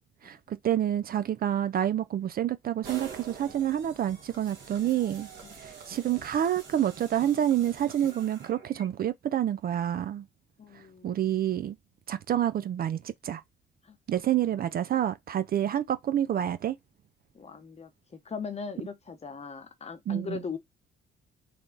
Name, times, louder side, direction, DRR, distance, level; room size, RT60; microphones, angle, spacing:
voice 1, 0.2-5.3 5.6-10.3 11.0-11.8 12.1-13.4 14.1-16.8 20.1-20.4, right 11 dB, 50° right, 0.4 m, -28 dB
sound 1, 2.8-8.9, right 6 dB, 70° right, 1.3 m, -46 dB
voice 2, 10.6-11.4 13.8-14.0 14.4-14.7 17.3-17.9 18.2-20.6, left 5 dB, 35° left, 1.0 m, -39 dB
3.3 x 2.3 x 3.7 m
cardioid pair, 90°, 20 cm